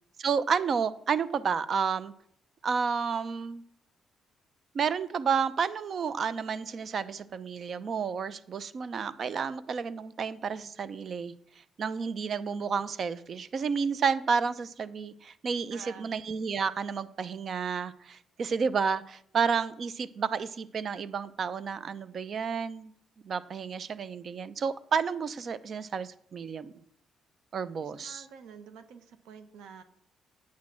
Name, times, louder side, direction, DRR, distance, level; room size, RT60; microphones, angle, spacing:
voice 1, 0.2-2.1 2.6-3.6 4.7-11.3 11.8-22.9 23.2-26.7 27.5-28.2, right 6 dB, 50° right, 16 dB, 0.6 m, -31 dB
voice 2, 15.7-16.1 27.8-29.8, right 7 dB, 90° right, 10 dB, 1.1 m, -49 dB
8.6 x 6.1 x 7.5 m, 0.68 s
cardioid pair, 90°, 0 cm